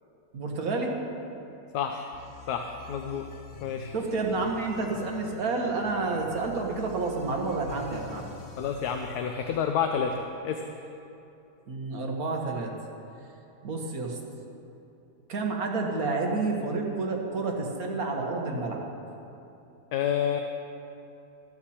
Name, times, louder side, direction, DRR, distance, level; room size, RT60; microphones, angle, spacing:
voice 1, 0.3-1.0 3.9-8.3 11.7-12.7 13.6-14.2 15.3-18.9, right 3 dB, 60° right, 1 dB, 1.9 m, -29 dB
voice 2, 1.7-2.1 2.5-3.3 3.6-3.9 8.6-10.6 19.9-20.4, left 7 dB, 70° left, 5 dB, 1.2 m, -29 dB
sound 1, 2.1-9.7, left 2 dB, 45° left, 0.8 m, -46 dB
14.5 x 13.0 x 4.4 m, 2.9 s
omnidirectional pair, 1.8 m